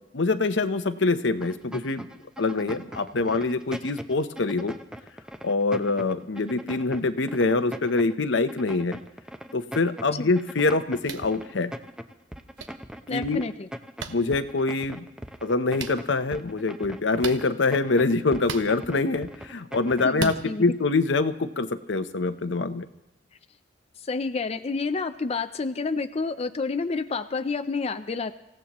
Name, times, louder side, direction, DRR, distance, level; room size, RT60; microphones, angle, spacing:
voice 1, 0.1-2.1 2.4-4.8 5.4-9.0 9.5-11.7 13.1-13.4 14.1-15.1 15.4-20.3 20.6-22.9, left 3 dB, 75° left, 10 dB, 0.8 m, -25 dB
sound 1, 1.4-20.2, equal, 5° right, 0.7 m, -40 dB
sound 2, 11.0-11.3 12.6-12.7 14.0-14.1 15.7-15.9 17.2-17.4 18.4-18.7 20.1-20.4, right 5 dB, 85° right, 1.1 m, -33 dB
voice 2, 13.1-13.7 20.0-20.6 24.0-28.3, left 4 dB, 35° left, 9 dB, 0.5 m, -29 dB
26.5 x 16.0 x 3.0 m, 0.94 s
head